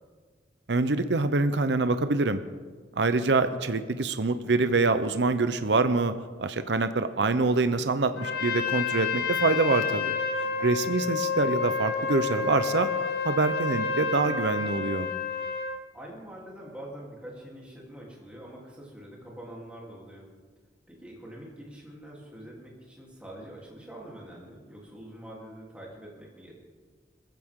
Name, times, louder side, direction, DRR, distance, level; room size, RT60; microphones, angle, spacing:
voice 1, 0.7-2.4 2.9-6.1 6.4-10.2 10.6-12.9 13.2-15.1, right 3 dB, 65° right, 10 dB, 0.7 m, -25 dB
Trumpet, 8.2-15.8, left 5 dB, 55° left, 1.2 m, -29 dB
voice 2, 10.4-11.0 15.9-20.3 20.9-26.5, right 1 dB, 5° right, -4 dB, 3.3 m, -45 dB
20.5 x 15.0 x 3.7 m, 1.5 s
head